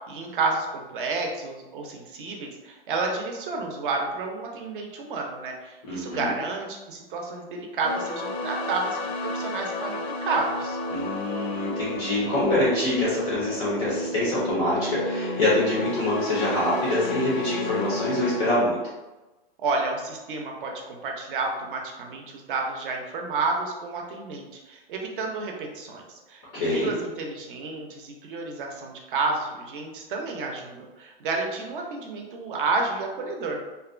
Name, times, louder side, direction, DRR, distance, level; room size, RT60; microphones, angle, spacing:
voice 1, 0.1-10.8 19.6-33.6, right 3 dB, 55° right, 1 dB, 0.6 m, -30 dB
voice 2, 5.8-6.3 10.9-18.8 26.5-26.9, left 1 dB, 15° left, -8 dB, 0.3 m, -25 dB
sound 1, 7.8-18.6, left 1 dB, 90° left, 0.5 m, -32 dB
2.6 x 2.1 x 2.4 m, 1.1 s
hypercardioid pair, 150°, 30 cm